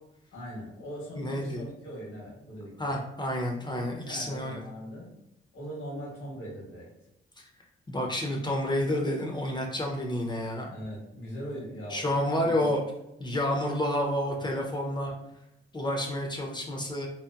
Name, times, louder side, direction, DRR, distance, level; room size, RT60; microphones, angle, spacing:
voice 1, 0.3-3.0 3.7-5.1 5.5-6.9 10.7-12.0 12.3-12.7 14.4-14.5 14.8-15.1, equal, 85° left, -4 dB, 1.2 m, -41 dB
voice 2, 1.2-1.6 2.8-4.6 7.9-10.7 11.9-12.8 13.2-15.1 15.7-17.1, left 1 dB, 20° left, 0 dB, 0.5 m, -29 dB
2.8 x 2.0 x 2.3 m, 0.84 s
cardioid pair, 85°, 21 cm